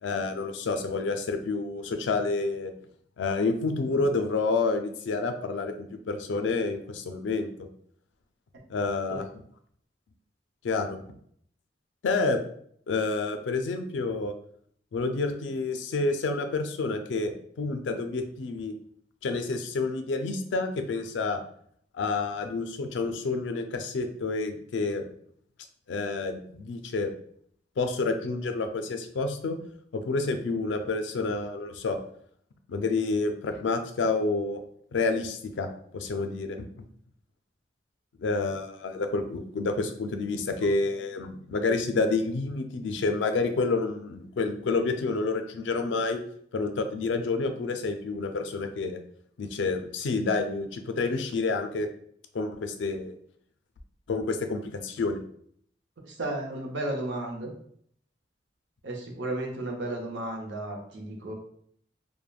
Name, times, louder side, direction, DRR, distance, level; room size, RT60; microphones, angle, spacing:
voice 1, 0.0-2.7 3.2-7.7 8.7-9.3 10.6-11.0 12.0-12.4 12.9-14.3 14.9-18.7 19.2-21.4 21.9-25.1 25.9-27.1 27.8-29.6 29.9-32.0 32.7-34.6 34.9-35.7 35.9-36.7 38.2-46.2 46.5-49.0 49.4-51.9 52.3-53.2 54.1-55.2, left 3 dB, 85° left, 7 dB, 0.4 m, -29 dB
voice 2, 56.0-57.5 58.8-61.3, right 1 dB, 90° right, 1 dB, 0.7 m, -33 dB
3.2 x 2.1 x 2.3 m, 0.64 s
head